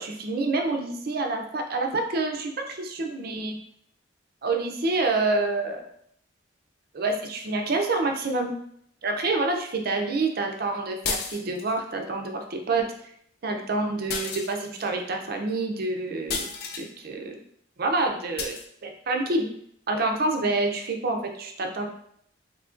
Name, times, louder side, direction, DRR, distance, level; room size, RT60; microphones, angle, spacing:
voice 1, 0.0-3.6 4.4-5.8 6.9-8.5 9.0-12.9 13.4-16.5 16.8-17.4 17.8-18.5 18.8-19.5 19.9-21.9, right 3 dB, 50° right, 3 dB, 0.5 m, -27 dB
sound 1, 11.0-11.8 14.1-14.9 16.3-16.9 18.4-18.7, left 5 dB, 55° left, 0.4 m, -32 dB
3.7 x 2.7 x 2.5 m, 0.68 s
head